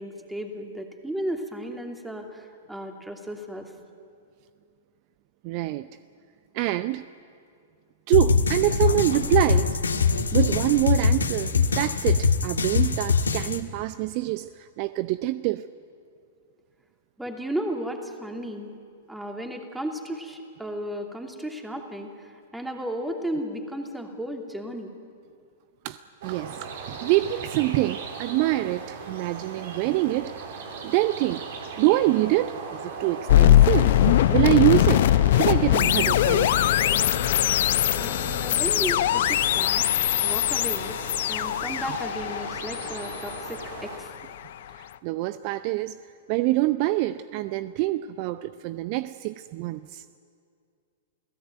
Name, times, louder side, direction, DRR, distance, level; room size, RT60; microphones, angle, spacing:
voice 1, 0.0-3.7 17.2-18.7 19.1-24.9 38.0-39.9 40.2-41.0 41.3-44.1, right 1 dB, 5° right, 4 dB, 2.7 m, -34 dB
voice 2, 5.4-5.9 6.5-7.1 8.1-9.7 10.3-15.7 25.8-30.3 30.8-31.4 31.8-32.6 33.0-36.5 38.3-38.4 45.0-46.0 46.3-50.0, right 17 dB, 45° right, 15 dB, 0.6 m, -25 dB
sound 1, 8.1-13.6, left 5 dB, 80° left, 1.6 m, -23 dB
sound 2, 26.2-44.0, right 5 dB, 60° right, 3.4 m, -39 dB
sound 3, 33.3-44.3, left 13 dB, 60° left, 0.8 m, -21 dB
28.5 x 17.0 x 9.2 m, 2.3 s
figure-of-eight pair, 105°, 0 cm